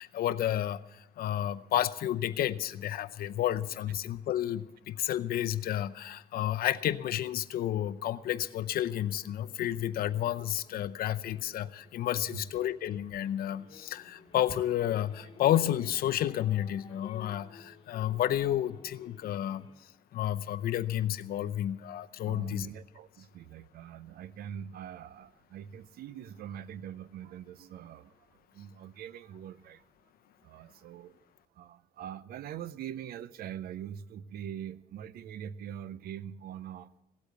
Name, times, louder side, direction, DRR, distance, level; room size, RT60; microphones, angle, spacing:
voice 1, 0.0-19.7 20.1-22.7, left 12 dB, 80° left, 12 dB, 0.7 m, -31 dB
sound 1, 8.1-19.7, left 4 dB, 40° left, 2.7 m, -54 dB
voice 2, 22.3-28.1 28.5-29.8 30.4-31.1 31.6-37.0, right 9 dB, 85° right, 17 dB, 0.6 m, -43 dB
17.0 x 8.4 x 8.1 m, 0.90 s
cardioid pair, 125°, 15 cm